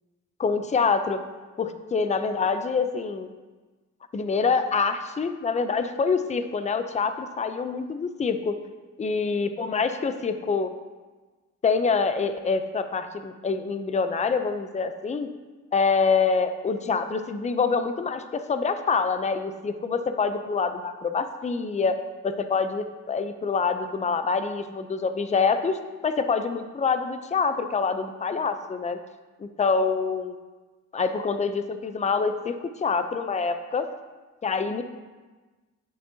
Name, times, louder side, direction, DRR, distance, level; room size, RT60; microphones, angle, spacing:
voice 1, 0.4-1.2 1.6-3.3 4.1-8.6 9.0-10.7 11.6-15.3 15.7-22.0 22.2-29.0 29.4-30.4 30.9-32.6 32.8-33.9 34.4-34.8, left 5 dB, 25° left, 9 dB, 0.5 m, -26 dB
9.6 x 7.1 x 2.8 m, 1.3 s
cardioid pair, 90°, 30 cm